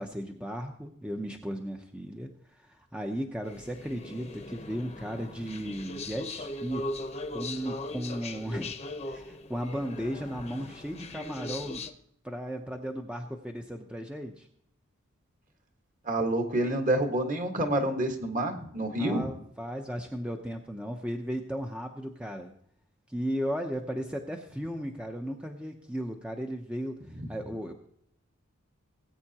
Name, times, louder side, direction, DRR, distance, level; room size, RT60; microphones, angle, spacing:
voice 1, 0.0-6.9 7.3-8.8 9.1-11.8 12.2-14.5 19.0-22.5 23.1-27.0 27.3-27.7, equal, 5° right, 3 dB, 0.7 m, -35 dB
sound 1, 3.4-11.9, left 2 dB, 30° left, 0.9 m, -39 dB
voice 2, 16.1-19.3, right 1 dB, 40° right, 4 dB, 1.6 m, -28 dB
19.0 x 8.8 x 2.9 m, 0.69 s
head